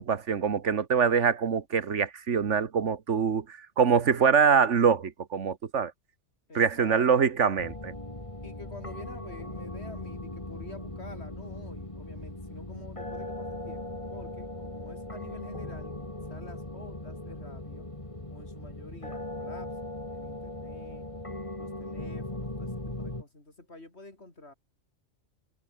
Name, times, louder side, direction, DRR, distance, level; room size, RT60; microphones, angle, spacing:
voice 1, 0.0-5.9 6.5-7.9, right 6 dB, 80° right, 1.7 m, -24 dB
voice 2, 6.5-7.1 8.4-13.8 14.1-16.0 16.3-17.9 18.3-21.1 21.6-24.5, left 2 dB, 65° left, 5.0 m, -48 dB
sound 1, 7.6-23.2, left 1 dB, 25° left, 3.3 m, -39 dB
omnidirectional pair, 1.2 m